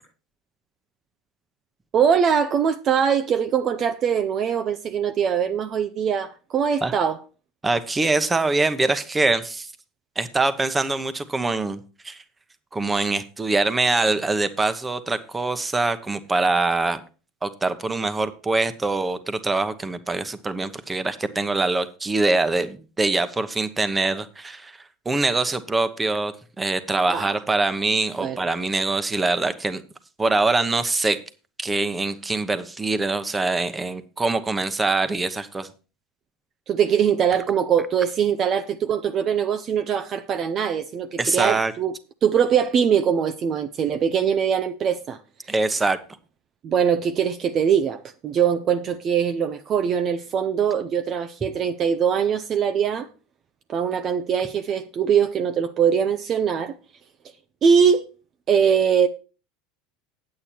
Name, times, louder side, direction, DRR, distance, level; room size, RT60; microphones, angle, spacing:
voice 1, 1.9-7.2 27.1-27.3 28.2-28.4 36.7-41.9 42.2-45.2 46.6-53.1 53.7-56.7 57.6-58.1 58.5-59.1, right 7 dB, 40° right, 0.6 m, -22 dB
voice 2, 7.6-9.7 10.2-12.2 12.7-17.0 17.4-24.8 25.0-29.8 30.2-31.2 31.6-35.7 41.2-41.7 45.5-46.0, right 3 dB, 15° right, 1.0 m, -24 dB
8.6 x 8.6 x 4.4 m
supercardioid pair, 115°, 0 cm